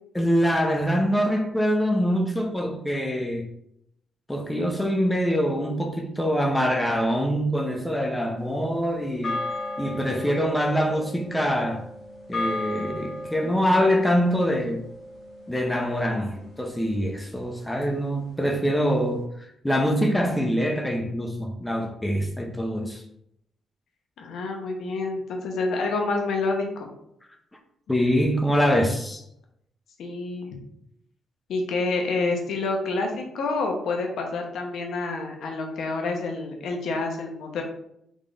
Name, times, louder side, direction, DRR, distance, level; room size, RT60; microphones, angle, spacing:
voice 1, 0.1-3.5 4.3-9.4 9.8-11.9 12.3-14.8 15.5-23.0 27.9-29.2, equal, 5° left, 0.6 m, -24 dB
sound 1, 8.4-16.9, left 1 dB, 45° left, 1.7 m, -36 dB
voice 2, 24.2-26.9 30.0-30.5 31.5-37.6, left 3 dB, 75° left, 0.9 m, -28 dB
3.7 x 3.6 x 3.8 m
cardioid pair, 115°, 0 cm